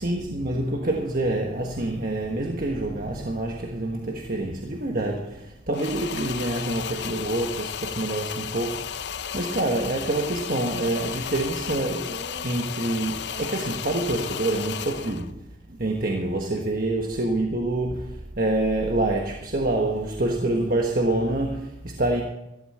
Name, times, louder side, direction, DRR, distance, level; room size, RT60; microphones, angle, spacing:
voice 1, 0.0-22.2, right 2 dB, 50° right, 1.4 m, -27 dB
sound 1, 5.7-15.3, left 8 dB, 70° left, 0.5 m, -34 dB
14.5 x 13.5 x 4.3 m
head